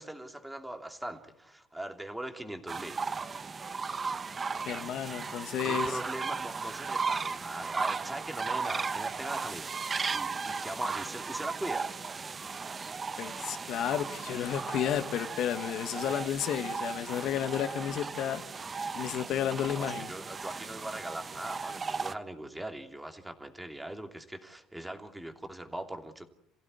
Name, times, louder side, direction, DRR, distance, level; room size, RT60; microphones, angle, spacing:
voice 1, 0.0-3.0 5.6-9.7 10.1-11.9 19.8-26.2, right 1 dB, 5° right, 2.7 m, -40 dB
sound 1, 2.7-22.1, right 5 dB, 25° right, 1.1 m, -36 dB
voice 2, 4.7-6.0 13.2-18.4 18.9-20.1, left 10 dB, 60° left, 1.9 m, -32 dB
28.5 x 16.0 x 9.7 m
cardioid pair, 115°, 0 cm